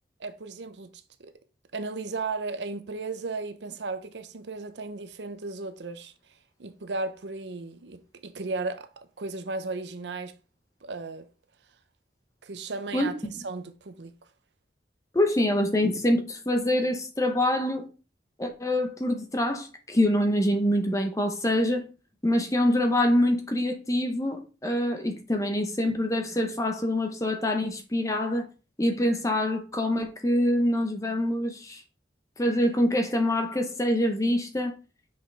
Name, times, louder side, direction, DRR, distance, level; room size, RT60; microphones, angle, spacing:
voice 1, 0.2-0.9 1.2-1.3 1.7-6.1 6.6-10.3 10.8-11.3 12.4-14.1, right 3 dB, 80° right, 0.7 m, -35 dB
voice 2, 12.9-13.3 15.1-17.9 18.4-21.8 22.2-28.5 28.8-31.8 32.4-34.8, left 1 dB, 20° left, 0.9 m, -25 dB
5.8 x 5.4 x 3.4 m
head